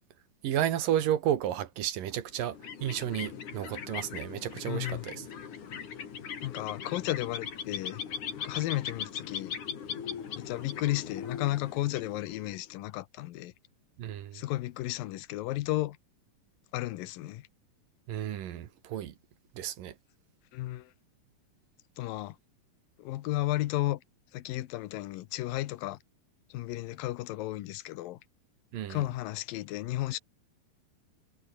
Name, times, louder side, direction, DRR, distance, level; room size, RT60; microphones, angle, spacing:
voice 1, 0.4-5.3 14.0-14.4 18.1-19.1 19.6-19.9 28.7-29.0, right 11 dB, 70° right, 3.3 m, -32 dB
sound 1, 2.3-12.7, left 7 dB, 60° left, 4.2 m, -40 dB
voice 2, 4.7-5.1 6.4-8.0 8.4-9.5 10.3-13.5 14.3-16.0 16.7-17.5 20.5-20.9 22.0-22.4 23.0-24.0 24.3-26.0 26.5-28.2 28.9-30.2, left 16 dB, 85° left, 2.6 m, -33 dB
omnidirectional pair, 4.1 m